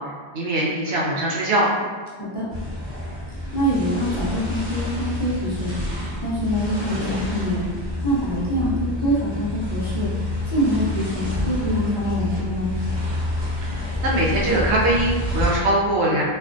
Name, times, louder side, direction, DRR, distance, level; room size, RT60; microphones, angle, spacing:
voice 1, 0.3-1.7 13.7-16.2, right 1 dB, 80° right, -4 dB, 0.9 m, -21 dB
sound 1, 2.5-15.6, left 1 dB, 45° right, 1.0 m, -28 dB
voice 2, 3.5-7.7 8.0-10.1 10.5-12.8, equal, 45° left, -7 dB, 0.3 m, -25 dB
2.4 x 2.1 x 2.5 m, 1.5 s
omnidirectional pair, 1.1 m